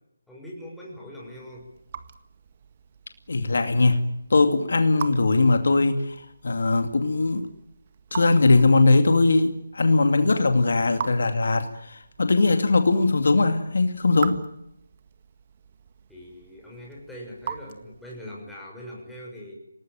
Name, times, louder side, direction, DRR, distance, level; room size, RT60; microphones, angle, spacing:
voice 1, 0.3-1.7 16.1-19.5, equal, ahead, -4 dB, 6.4 m, -41 dB
Raindrop / Drip, 1.2-18.4, right 7 dB, 35° right, 1.8 m, -42 dB
voice 2, 3.3-4.0 4.3-7.5 8.1-14.4, left 3 dB, 65° left, 7 dB, 2.4 m, -20 dB
27.5 x 19.0 x 9.1 m, 0.82 s
figure-of-eight pair, 155°, 0 cm